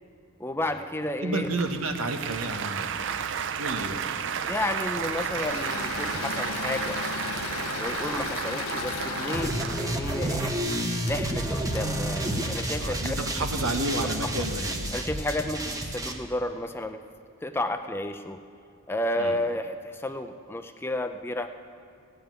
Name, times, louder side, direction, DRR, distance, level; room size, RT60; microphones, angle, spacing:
voice 1, 0.4-1.5 4.4-7.0 7.8-10.5 11.0-13.3 14.9-17.0 17.4-18.4 18.9-21.5, left 1 dB, 10° left, 7 dB, 0.4 m, -32 dB
voice 2, 1.2-2.9 3.6-4.0 12.8-15.0 19.2-19.4, right 2 dB, 75° right, 5 dB, 1.3 m, -30 dB
Applause, 1.4-12.0, right 7 dB, 60° right, 0.5 m, -33 dB
Engine / Mechanisms, 4.9-13.3, left 5 dB, 85° left, 0.7 m, -36 dB
sound 1, 9.3-16.1, right 1 dB, 15° right, 0.9 m, -30 dB
16.5 x 6.8 x 9.2 m, 2.4 s
head